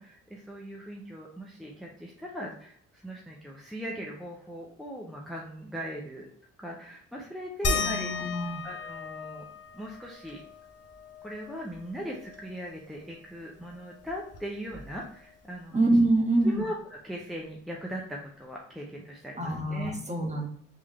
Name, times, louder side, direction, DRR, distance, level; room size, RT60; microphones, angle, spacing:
voice 1, 0.0-6.3 6.6-8.1 8.4-9.5 9.7-10.4 11.2-15.8 16.4-16.7 17.0-20.0, equal, ahead, -2 dB, 0.7 m, -39 dB
sound 1, 7.6-12.8 13.1-13.2 13.6-15.3 16.6-16.7 17.4-17.5, left 3 dB, 45° left, 0.8 m, -36 dB
voice 2, 7.6-8.6 15.7-16.6 19.4-20.5, right 1 dB, 20° right, 1 dB, 1.3 m, -26 dB
3.8 x 3.2 x 3.1 m, 0.64 s
hypercardioid pair, 55°, 34 cm